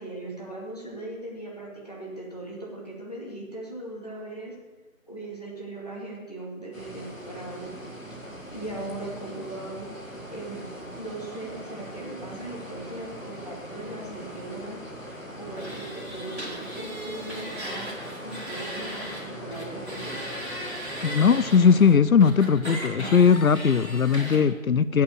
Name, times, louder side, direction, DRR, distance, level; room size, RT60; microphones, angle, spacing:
voice 1, 0.0-4.5 5.1-7.7 8.5-10.7 10.9-14.8 15.4-17.9 18.2-20.4, right 2 dB, 30° left, -4 dB, 2.3 m, -38 dB
sound 1, 6.7-22.0, equal, 65° left, 3.3 m, -41 dB
sound 2, 15.6-19.2 19.5-21.6 22.2-24.4, equal, 50° right, 2.7 m, -37 dB
voice 2, 21.0-25.0, left 6 dB, 80° left, 16 dB, 0.5 m, -19 dB
9.4 x 8.6 x 7.6 m, 1.3 s
figure-of-eight pair, 180°, 42 cm